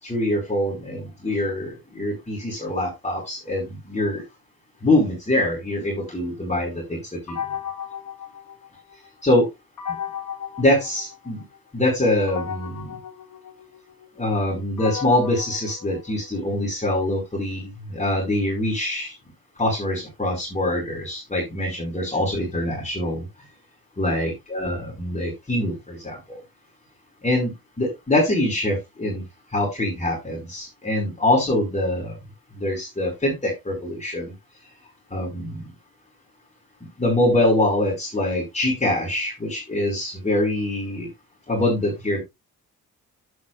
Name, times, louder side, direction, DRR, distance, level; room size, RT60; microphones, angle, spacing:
voice 1, 0.0-4.2 4.8-7.4 9.2-9.5 10.6-11.4 11.7-12.9 14.2-19.1 19.6-23.3 24.0-26.2 27.2-29.2 29.5-32.2 32.5-34.3 35.1-35.7 36.8-41.1 41.5-42.2, left 1 dB, 20° left, -3 dB, 4.7 m, -24 dB
sound 1, 7.3-9.1 9.8-11.6 12.3-16.5, left 8 dB, 60° left, 3.8 m, -35 dB
10.5 x 8.6 x 2.4 m, 0.21 s
wide cardioid pair, 130°, 36 cm